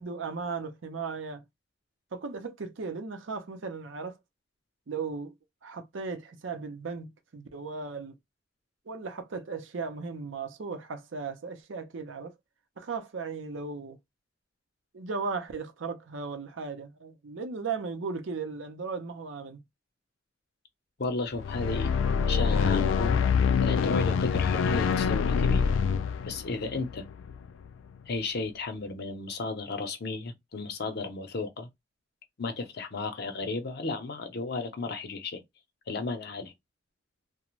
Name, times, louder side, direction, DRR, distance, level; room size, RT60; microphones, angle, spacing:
voice 1, 0.0-1.4 2.1-4.2 4.9-5.3 5.6-8.1 8.9-12.3 12.8-14.0 14.9-19.6, right 4 dB, 80° right, 0.6 m, -36 dB
voice 2, 21.0-21.9 22.3-23.2 23.6-25.7 26.2-27.1 28.1-31.7 32.4-35.4 35.9-36.5, left 3 dB, 55° left, 0.7 m, -34 dB
sound 1, 21.3-27.7, left 6 dB, 85° left, 0.3 m, -26 dB
2.4 x 2.1 x 3.0 m
head